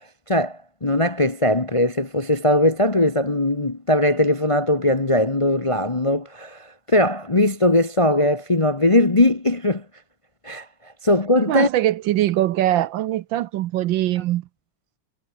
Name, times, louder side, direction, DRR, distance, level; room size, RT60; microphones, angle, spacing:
voice 1, 0.3-9.8 10.4-10.6 11.0-11.7, left 1 dB, 25° left, 0.8 m, -20 dB
voice 2, 11.5-14.5, right 13 dB, 70° right, 1.3 m, -22 dB
omnidirectional pair, 2.3 m